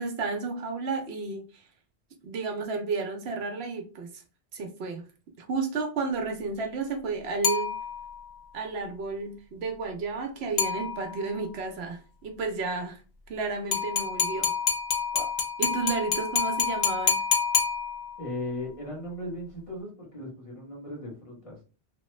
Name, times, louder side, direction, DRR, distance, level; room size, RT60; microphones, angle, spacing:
voice 1, 0.0-1.5 2.2-4.2 4.5-5.1 5.4-7.7 8.5-13.0 13.3-14.5 15.1-15.3 15.6-17.2, right 4 dB, 75° right, 0.9 m, -32 dB
sound 1, 7.4-8.3 10.6-11.3 13.7-18.3, left 6 dB, 50° left, 0.6 m, -28 dB
voice 2, 18.2-21.6, left 1 dB, 30° left, 1.3 m, -37 dB
3.0 x 2.1 x 3.1 m
omnidirectional pair, 1.1 m